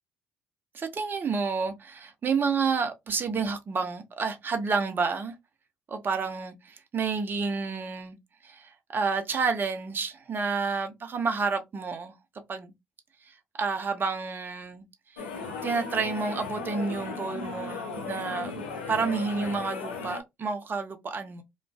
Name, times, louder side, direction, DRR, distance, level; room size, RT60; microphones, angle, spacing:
voice 1, 0.7-5.3 5.9-8.2 8.4-12.1 12.5-12.7 13.2-14.8 15.1-15.2 15.6-21.4, right 5 dB, 40° right, 0.6 m, -30 dB
sound 1, 15.2-20.2, left 4 dB, 85° left, 0.5 m, -36 dB
2.5 x 2.2 x 2.3 m
hypercardioid pair, 50°, 5 cm